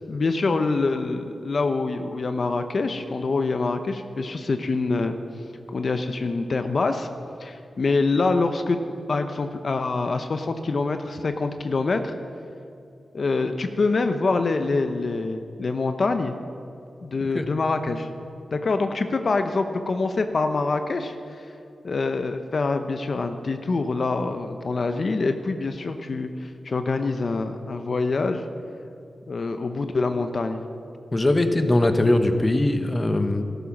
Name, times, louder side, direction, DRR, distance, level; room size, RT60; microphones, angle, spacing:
voice 1, 0.1-5.2 5.7-7.1 7.4-8.8 9.1-12.1 13.1-16.3 17.0-18.1 18.5-21.5 21.8-28.4 29.3-30.6, left 3 dB, 60° left, 7 dB, 0.8 m, -25 dB
voice 2, 31.1-33.4, left 1 dB, 30° left, 8 dB, 1.2 m, -21 dB
14.0 x 12.5 x 6.0 m, 2.5 s
cardioid pair, 65°, 0 cm